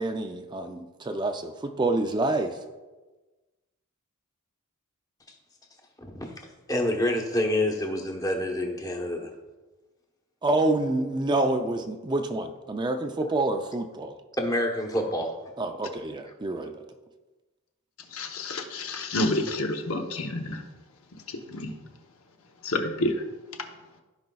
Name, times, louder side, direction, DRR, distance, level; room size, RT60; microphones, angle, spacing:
voice 1, 0.0-2.6 10.4-14.2 15.6-16.8, right 2 dB, 20° right, 5 dB, 0.4 m, -27 dB
voice 2, 6.1-9.3 14.4-15.3, left 1 dB, 15° left, 2 dB, 1.0 m, -27 dB
voice 3, 18.1-20.6 21.3-21.7 22.6-23.2, left 1 dB, 65° left, 4 dB, 0.9 m, -29 dB
14.5 x 5.2 x 2.3 m, 1.2 s
head